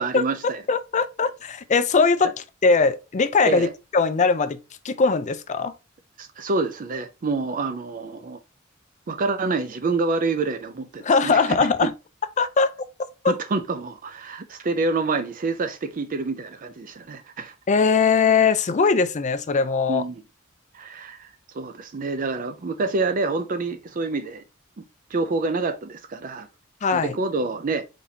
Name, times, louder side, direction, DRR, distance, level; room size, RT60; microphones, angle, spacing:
voice 1, 0.0-0.6 3.4-3.7 6.2-8.4 9.1-11.9 13.2-17.5 19.9-20.2 20.7-21.3 21.5-24.4 25.1-26.5 26.9-27.8, right 3 dB, 40° right, 0.5 m, -27 dB
voice 2, 0.7-2.3 2.6-3.7 3.9-4.6 4.8-5.7 11.0-11.9 12.4-12.7 13.2-13.3 17.7-20.0 26.8-27.1, left 4 dB, 35° left, 0.5 m, -20 dB
4.4 x 4.0 x 2.8 m
head